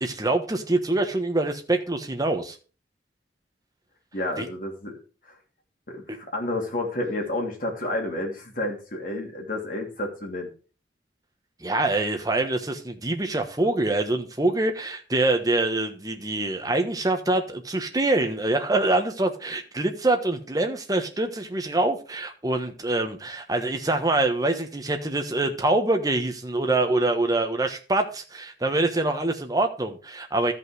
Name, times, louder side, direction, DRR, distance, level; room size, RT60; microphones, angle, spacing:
voice 1, 0.0-2.6 4.4-4.5 11.6-30.5, right 2 dB, 20° right, 4 dB, 1.2 m, -25 dB
voice 2, 4.1-5.0 5.9-10.5, left 1 dB, 50° left, 1 dB, 2.7 m, -30 dB
13.0 x 5.5 x 4.9 m, 0.37 s
head